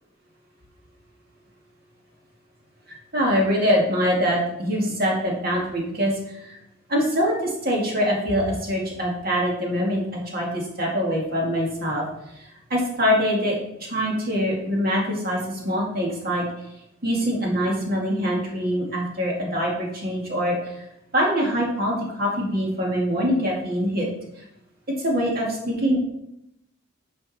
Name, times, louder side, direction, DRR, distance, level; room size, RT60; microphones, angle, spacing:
voice 1, 3.1-6.6 6.9-12.0 12.4-16.5 17.0-20.6 21.1-24.1 24.9-26.0, equal, 45° right, -2 dB, 2.2 m, -24 dB
9.3 x 5.3 x 4.3 m, 0.83 s
head